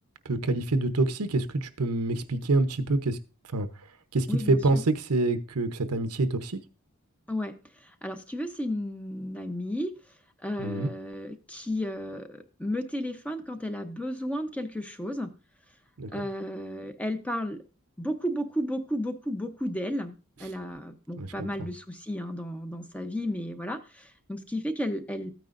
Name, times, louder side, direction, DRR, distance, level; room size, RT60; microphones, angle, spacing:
voice 1, 0.3-3.2 3.5-3.7 4.1-6.6 10.6-10.9 16.0-16.2 21.2-21.7, right 2 dB, 90° right, 0.9 m, -26 dB
voice 2, 4.3-4.8 7.3-7.5 8.0-9.9 10.4-15.3 16.1-17.6 18.0-25.3, equal, 5° left, 0.7 m, -33 dB
14.0 x 9.2 x 2.6 m
head